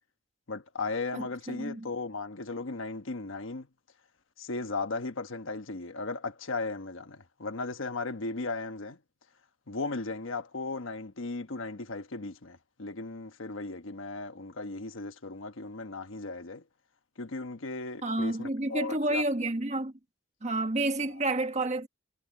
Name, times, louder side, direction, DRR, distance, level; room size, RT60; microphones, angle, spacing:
voice 1, 0.5-3.7 4.4-9.0 9.7-16.6 17.2-19.2, left 3 dB, 90° left, 1.2 m, -36 dB
voice 2, 1.1-1.9 18.0-19.9 20.4-21.9, right 2 dB, 35° right, 1.5 m, -30 dB
head